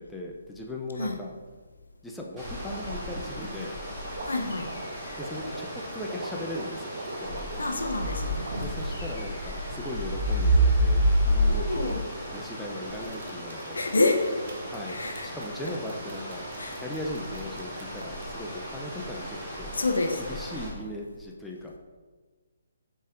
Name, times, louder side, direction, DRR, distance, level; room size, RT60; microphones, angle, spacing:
voice 1, 0.0-1.3 2.0-3.8 5.2-6.9 7.2-7.5 8.6-13.8 14.7-15.0 15.2-16.5 16.8-19.7 20.3-21.7, left 1 dB, 5° left, -2 dB, 0.4 m, -38 dB
sound 1, 2.4-20.7, right 1 dB, 15° right, 1.5 m, -31 dB
sound 2, 2.6-8.9 9.4-10.7 11.9-12.4 12.9-18.3, right 2 dB, 55° right, 0.7 m, -43 dB
sound 3, 4.0-10.6, left 2 dB, 60° left, 1.3 m, -51 dB
voice 2, 4.3-4.7 7.6-8.9 11.5-12.1 13.7-14.2 14.9-15.3 16.6-16.8 19.7-20.2, left 2 dB, 80° left, 3 dB, 0.6 m, -28 dB
4.8 x 4.0 x 2.5 m, 1.4 s
figure-of-eight pair, 145°, 0 cm